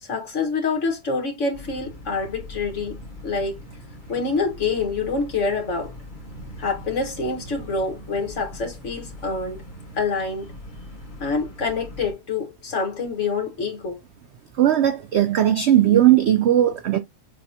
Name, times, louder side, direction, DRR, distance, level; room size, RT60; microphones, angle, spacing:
voice 1, 0.0-3.0 3.2-3.6 4.1-5.9 6.6-9.6 10.0-10.5 11.2-14.0, left 4 dB, 55° left, 1.6 m, -26 dB
sound 1, 1.5-12.1, left 1 dB, 35° left, 1.4 m, -41 dB
voice 2, 14.6-17.0, right 11 dB, 70° right, 0.6 m, -17 dB
6.7 x 2.3 x 2.6 m
omnidirectional pair, 1.6 m